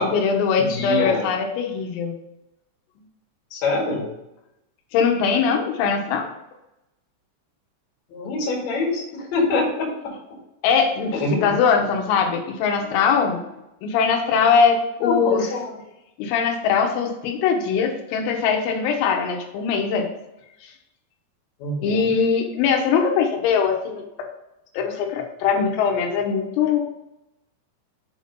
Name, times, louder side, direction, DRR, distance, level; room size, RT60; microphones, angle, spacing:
voice 1, 0.0-2.2 4.9-6.3 10.6-11.2 11.4-13.5 13.8-15.4 16.2-20.1 20.6-20.7 21.8-24.1 24.8-26.8, left 6 dB, 85° left, 2 dB, 3.7 m, -21 dB
voice 2, 0.6-1.3 3.5-4.1 8.1-10.1 11.1-11.5 15.0-15.7 21.6-22.1, left 2 dB, 50° left, -2 dB, 2.4 m, -25 dB
7.5 x 4.0 x 5.2 m, 0.90 s
omnidirectional pair, 5.9 m